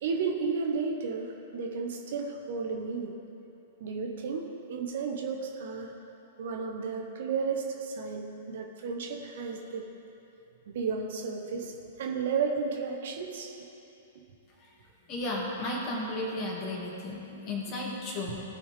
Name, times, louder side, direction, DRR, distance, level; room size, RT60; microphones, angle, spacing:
voice 1, 0.0-3.2 3.8-5.9 6.4-9.9 10.7-13.5 18.3-18.4, right 5 dB, 55° right, 2 dB, 1.1 m, -33 dB
voice 2, 15.1-18.4, left 2 dB, 30° left, -2 dB, 2.2 m, -34 dB
18.0 x 6.2 x 3.3 m, 2.9 s
figure-of-eight pair, 105°, 0 cm